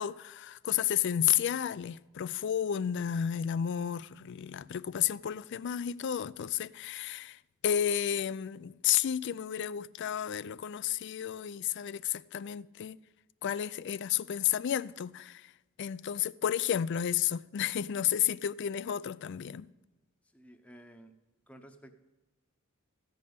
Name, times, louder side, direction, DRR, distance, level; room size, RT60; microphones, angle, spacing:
voice 1, 0.0-13.0 13.4-15.5 15.8-19.7, left 10 dB, 55° left, 0.4 m, -32 dB
voice 2, 20.3-21.1 21.5-21.9, right 1 dB, 5° left, 0.9 m, -53 dB
15.0 x 5.4 x 9.4 m
head